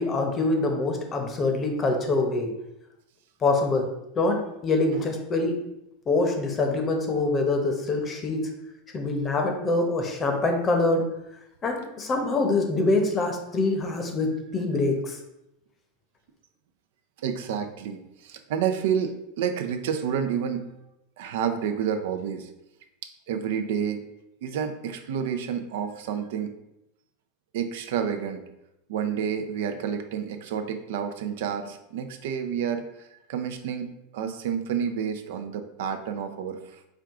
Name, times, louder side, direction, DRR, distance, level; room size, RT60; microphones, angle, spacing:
voice 1, 0.0-2.5 3.4-3.9 4.1-5.5 6.1-8.4 8.9-11.0 11.6-15.2, left 2 dB, 25° left, 3 dB, 0.8 m, -25 dB
voice 2, 17.2-20.7 21.2-22.5 23.3-24.0 24.4-26.5 27.5-28.4 28.9-32.8 33.3-36.6, right 8 dB, 75° right, 7 dB, 0.5 m, -29 dB
4.5 x 2.4 x 3.6 m, 0.86 s
supercardioid pair, 125°, 0 cm